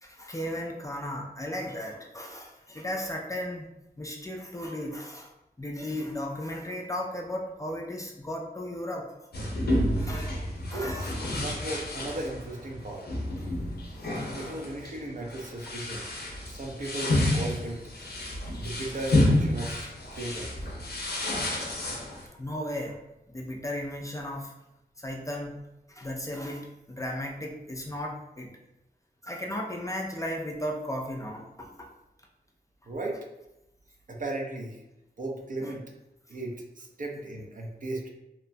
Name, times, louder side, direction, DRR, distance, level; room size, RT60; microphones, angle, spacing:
voice 1, 0.0-3.7 4.0-5.3 5.6-9.1 10.0-10.4 10.7-11.4 22.1-23.0 23.3-24.5 25.0-25.6 25.9-28.5 29.2-31.9 35.6-35.7, left 1 dB, 20° left, 0 dB, 0.4 m, -35 dB
sound 1, 9.3-22.3, left 1 dB, 80° left, 0.5 m, -30 dB
voice 2, 10.7-13.1 14.4-16.0 16.5-17.8 18.6-20.5 32.9-33.3 34.1-34.8 35.2-35.8 36.3-38.1, right 2 dB, 55° right, 0 dB, 0.5 m, -36 dB
2.8 x 2.1 x 2.5 m, 0.91 s
wide cardioid pair, 75°, 16 cm